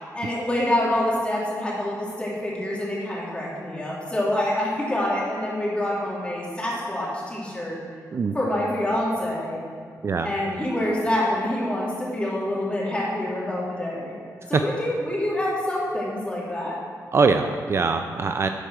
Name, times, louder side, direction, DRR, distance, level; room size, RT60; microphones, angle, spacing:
voice 1, 0.1-7.8 8.3-9.6 10.2-14.2 14.5-16.8, left 1 dB, 15° left, -6 dB, 2.5 m, -26 dB
voice 2, 17.1-18.5, right 4 dB, 45° right, 7 dB, 0.4 m, -22 dB
10.0 x 4.6 x 6.3 m, 2.2 s
wide cardioid pair, 130°, 6 cm